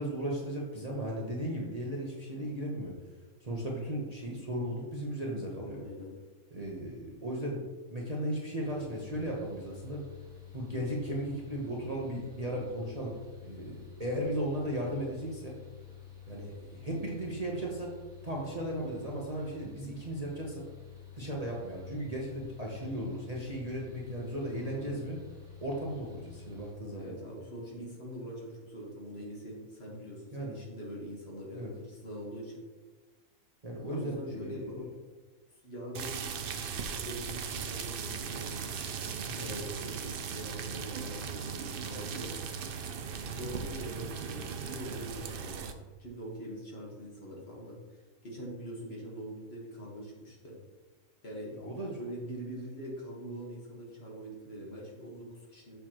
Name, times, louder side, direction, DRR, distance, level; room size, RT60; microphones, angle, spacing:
voice 1, 0.0-3.0 3.4-5.8 6.5-7.6 7.9-10.1 10.5-13.2 13.4-15.6 16.3-18.0 18.2-20.7 21.2-25.2 25.6-27.2 30.3-30.6 31.5-31.7 33.6-34.7 39.3-39.5 43.2-43.4 51.5-52.0, right 1 dB, 30° right, -3 dB, 0.9 m, -36 dB
voice 2, 5.7-6.2 24.4-25.1 27.0-32.5 33.9-34.9 35.6-36.1 37.0-38.5 39.3-42.3 43.3-45.7 46.0-48.0 48.2-50.6 51.2-51.5 52.0-55.8, equal, 45° left, -3 dB, 1.7 m, -43 dB
Mechanical fan, 8.6-26.7, left 9 dB, 5° right, 1.6 m, -50 dB
sound 1, 35.9-45.7, right 6 dB, 65° right, 0.5 m, -38 dB
6.7 x 6.4 x 3.0 m, 1.3 s
omnidirectional pair, 1.5 m